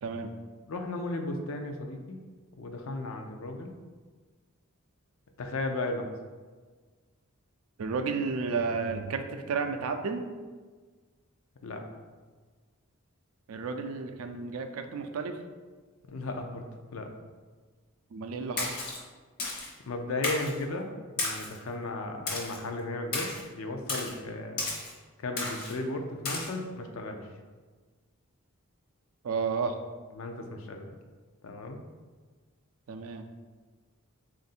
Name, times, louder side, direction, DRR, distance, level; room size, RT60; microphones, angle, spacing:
voice 1, 0.0-0.3 7.8-10.2 13.5-15.4 18.1-18.8 29.2-29.8 32.9-33.3, right 4 dB, 75° right, 6 dB, 0.4 m, -32 dB
voice 2, 0.7-2.2 2.6-3.7 5.4-6.0 11.6-11.8 16.1-16.7 16.9-17.1 19.9-24.7 25.2-27.2 30.1-30.9 31.4-31.8, left 2 dB, 70° left, 4 dB, 0.5 m, -35 dB
Splash splatter, 18.6-19.0 19.4-19.7 20.2-20.6 21.2-21.6 22.3-22.6 23.1-23.4 23.9-24.1 24.6-24.9 25.4-25.7 26.2-26.5, left 2 dB, 45° left, 0.8 m, -33 dB
3.5 x 2.5 x 4.1 m, 1.4 s
head